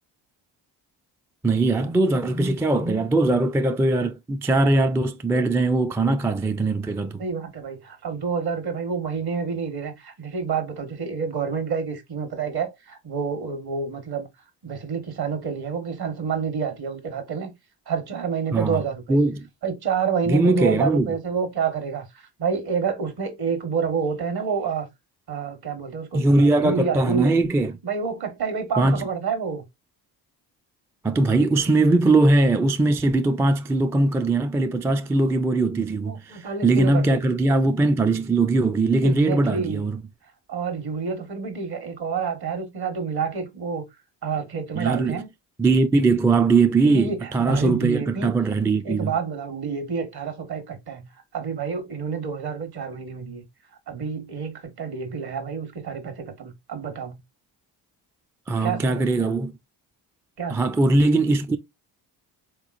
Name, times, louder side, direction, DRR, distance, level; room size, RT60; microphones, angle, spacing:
voice 1, 1.4-7.2 18.5-18.8 19.1-19.5 20.3-21.1 26.1-27.8 28.8-29.1 31.0-40.0 44.7-45.2 45.6-49.1 58.5-59.5 60.5-61.6, right 2 dB, 5° right, 0.3 m, -20 dB
voice 2, 7.2-14.3 14.6-17.5 17.9-19.2 19.6-24.9 25.3-27.3 27.8-29.6 36.1-37.3 39.0-39.9 40.5-43.8 44.2-45.3 46.8-48.3 48.8-51.1 51.3-53.4 53.9-57.2 58.6-59.4 60.4-60.5, right 6 dB, 50° right, 1.4 m, -28 dB
3.9 x 3.0 x 2.4 m
supercardioid pair, 55°, 47 cm